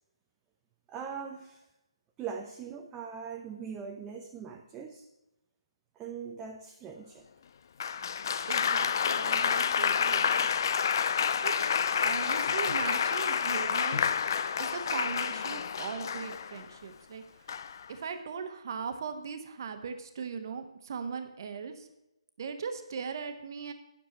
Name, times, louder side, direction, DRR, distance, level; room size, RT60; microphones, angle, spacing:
voice 1, 0.9-1.6 2.2-5.1 6.0-7.3, right 6 dB, 10° right, 2 dB, 0.6 m, -41 dB
Applause, 7.8-16.7 17.5-17.9, left 7 dB, 40° left, 0.5 m, -29 dB
voice 2, 8.5-10.7 11.4-11.5 12.0-14.1 14.6-17.2 17.9-21.9 22.4-23.7, right 6 dB, 40° right, 7 dB, 1.2 m, -39 dB
10.0 x 6.9 x 6.8 m, 0.93 s
figure-of-eight pair, 145°, 3 cm